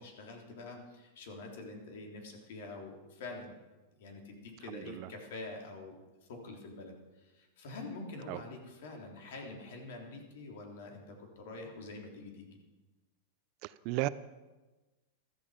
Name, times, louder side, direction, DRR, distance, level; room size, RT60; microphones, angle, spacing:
voice 1, 0.0-3.5 4.0-6.0 6.3-12.6, left 2 dB, 70° left, 2 dB, 3.5 m, -46 dB
voice 2, 4.7-5.1 8.3-8.4 13.6-14.1, right 19 dB, 50° right, 16 dB, 0.6 m, -35 dB
14.5 x 13.0 x 5.1 m, 1.2 s
supercardioid pair, 135°, 0 cm